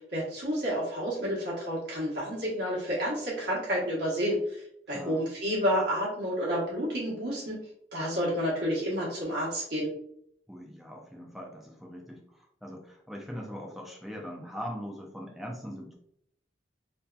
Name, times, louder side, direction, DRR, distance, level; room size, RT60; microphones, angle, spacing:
voice 1, 0.0-7.6 7.9-9.9, equal, 65° right, -7 dB, 0.9 m, -30 dB
voice 2, 4.9-5.3 10.5-15.9, equal, ahead, -1 dB, 0.4 m, -41 dB
2.6 x 2.2 x 2.3 m, 0.72 s
head